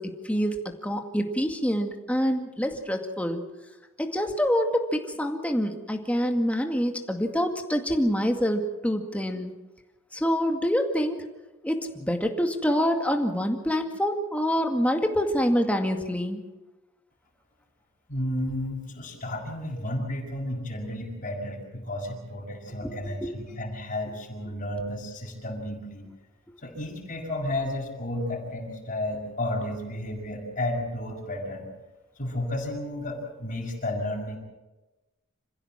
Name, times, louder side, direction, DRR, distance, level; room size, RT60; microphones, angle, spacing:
voice 1, 0.0-3.4 4.0-9.5 10.1-11.2 11.6-16.4 22.8-22.9 23.2-23.3, equal, 5° left, 4 dB, 2.1 m, -26 dB
voice 2, 18.1-26.1 26.6-31.7 32.2-34.4, left 1 dB, 45° left, -2 dB, 5.9 m, -32 dB
27.0 x 15.5 x 7.5 m, 1.1 s
head